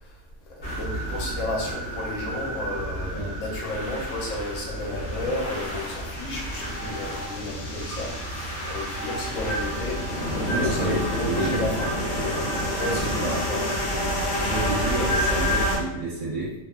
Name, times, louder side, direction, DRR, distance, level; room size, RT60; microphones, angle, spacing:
voice 1, 0.5-11.9 12.1-12.5 12.8-13.7 14.3-14.5, left 2 dB, 75° left, -2 dB, 1.0 m, -32 dB
sound 1, 0.6-15.8, equal, 40° left, 0.6 m, -29 dB
voice 2, 10.5-11.7 12.9-13.4 14.4-16.5, right 2 dB, 65° right, -7 dB, 1.2 m, -30 dB
2.8 x 2.1 x 2.3 m, 0.89 s
omnidirectional pair, 1.4 m